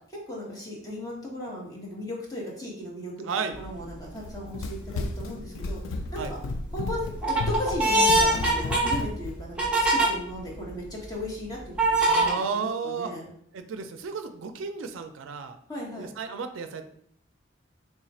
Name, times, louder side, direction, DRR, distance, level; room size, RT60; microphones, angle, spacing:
voice 1, 0.3-3.1 3.6-5.8 6.1-6.4 6.7-9.6 9.9-13.2 15.7-16.1, left 1 dB, 20° left, -4 dB, 1.2 m, -36 dB
voice 2, 3.2-3.6 6.2-6.3 12.1-13.1 13.5-15.6 16.0-16.8, right 5 dB, 85° right, 7 dB, 0.4 m, -33 dB
sound 1, 3.6-4.0 4.6-5.2 5.7-6.3 6.8-10.1 10.7-10.8 11.8-12.3, right 2 dB, 5° right, 1.0 m, -23 dB
Run, 4.2-9.4, left 3 dB, 90° left, 0.4 m, -33 dB
3.6 x 2.4 x 4.1 m, 0.66 s
head